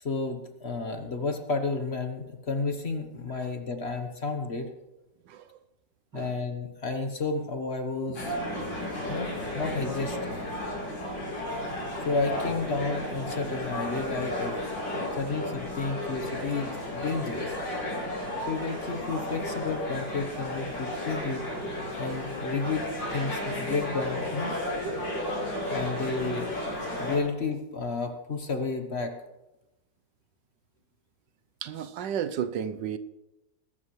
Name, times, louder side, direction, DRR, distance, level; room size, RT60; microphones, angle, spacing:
voice 1, 0.0-4.7 6.1-8.3 9.1-10.4 12.0-14.6 15.1-17.5 18.4-21.5 22.0-22.9 23.1-24.5 25.7-26.5 27.0-29.1, left 4 dB, 40° left, 1.2 m, -31 dB
voice 2, 5.3-5.6 6.1-6.3 8.1-8.2 15.3-15.4 24.8-25.0 25.8-26.3 31.6-33.0, right 8 dB, 80° right, 1.4 m, -34 dB
sound 1, 8.1-27.2, left 1 dB, 75° left, 5.2 m, -33 dB
21.0 x 12.0 x 3.2 m
omnidirectional pair, 1.9 m